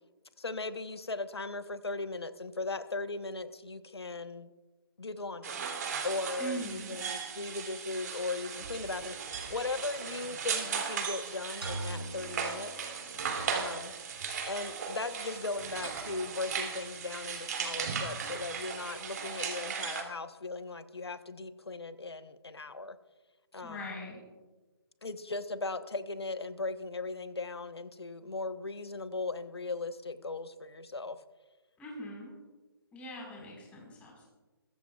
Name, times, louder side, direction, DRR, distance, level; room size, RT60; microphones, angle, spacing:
voice 1, 0.4-4.5 5.0-5.7 6.0-12.9 13.5-13.9 14.5-23.0 23.5-23.8 25.0-31.2, left 3 dB, 85° left, 11 dB, 1.0 m, -38 dB
sound 1, 5.4-20.0, right 6 dB, 45° right, 2.7 m, -37 dB
voice 2, 6.4-7.0 23.6-24.2 31.8-32.3 32.9-34.3, equal, 10° left, -2 dB, 4.4 m, -41 dB
sound 2, 11.6-13.6, right 1 dB, 75° right, 5.5 m, -41 dB
22.5 x 13.5 x 2.4 m, 1.2 s
figure-of-eight pair, 150°, 13 cm